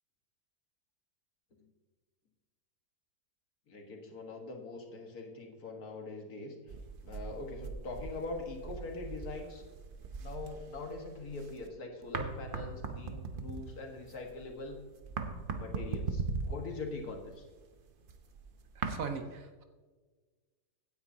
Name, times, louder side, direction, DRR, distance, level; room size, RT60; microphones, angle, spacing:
voice 1, 3.7-6.5 7.0-9.6 10.2-14.8 15.6-17.5, left 3 dB, 65° left, 2 dB, 1.9 m, -42 dB
sound 1, 6.7-11.7 12.0-19.0, right 4 dB, 45° right, 0.7 m, -40 dB
voice 2, 18.8-19.6, right 5 dB, 65° right, 7 dB, 1.2 m, -39 dB
16.0 x 9.7 x 2.7 m, 1.4 s
omnidirectional pair, 1.7 m